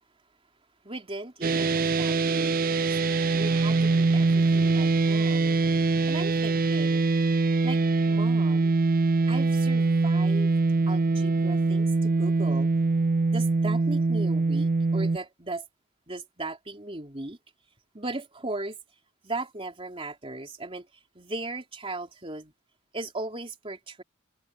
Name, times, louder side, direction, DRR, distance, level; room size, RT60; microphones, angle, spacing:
voice 1, 0.8-5.6 6.1-7.1 7.6-8.7 9.3-10.6 10.9-12.7 13.3-15.6 16.1-17.4 17.9-18.8 19.2-20.8 21.1-22.5 22.9-24.0, right 2 dB, 25° right, 3.4 m, -37 dB
sound 1, 1.4-15.2, right 3 dB, 45° right, 0.4 m, -23 dB
head